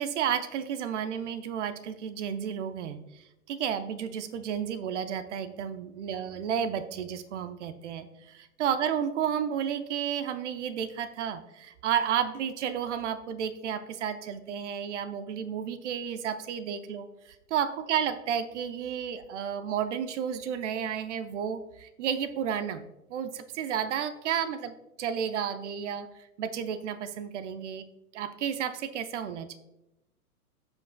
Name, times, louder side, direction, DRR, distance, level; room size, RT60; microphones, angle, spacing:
voice 1, 0.0-22.8 23.1-27.9 28.1-29.6, right 8 dB, 50° right, 11 dB, 0.7 m, -32 dB
15.5 x 5.2 x 2.2 m, 0.94 s
hypercardioid pair, 115°, 45 cm